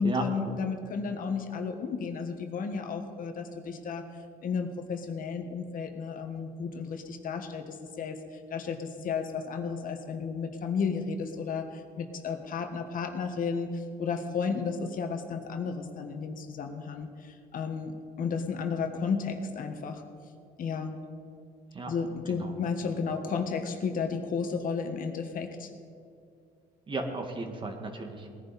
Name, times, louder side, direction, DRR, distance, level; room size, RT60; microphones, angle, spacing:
voice 1, 0.0-4.1 4.4-8.2 8.5-20.0 20.6-21.0 21.9-25.7, left 5 dB, 55° left, 5 dB, 1.4 m, -33 dB
voice 2, 26.9-28.3, right 3 dB, 30° right, 4 dB, 1.8 m, -34 dB
19.5 x 10.5 x 4.2 m, 2.4 s
cardioid pair, 110°, 17 cm